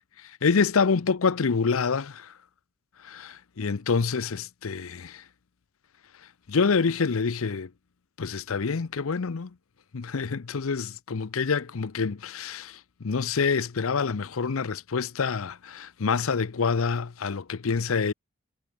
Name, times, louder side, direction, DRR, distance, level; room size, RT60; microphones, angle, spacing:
voice 1, 0.2-2.3 3.0-5.2 6.5-7.7 8.2-9.5 9.9-18.1, left 5 dB, 85° left, 0.6 m, -27 dB
head